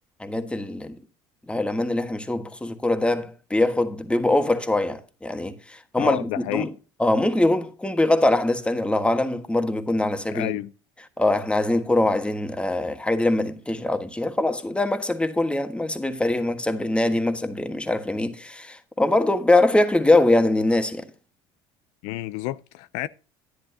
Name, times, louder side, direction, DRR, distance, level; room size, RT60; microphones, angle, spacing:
voice 1, 0.2-1.0 1.5-6.7 7.0-10.6 11.2-21.1, left 2 dB, 10° left, 1.4 m, -23 dB
voice 2, 6.0-6.7 10.3-10.7 22.0-23.1, left 16 dB, 80° left, 0.4 m, -29 dB
10.5 x 10.5 x 2.7 m
supercardioid pair, 85°, 12 cm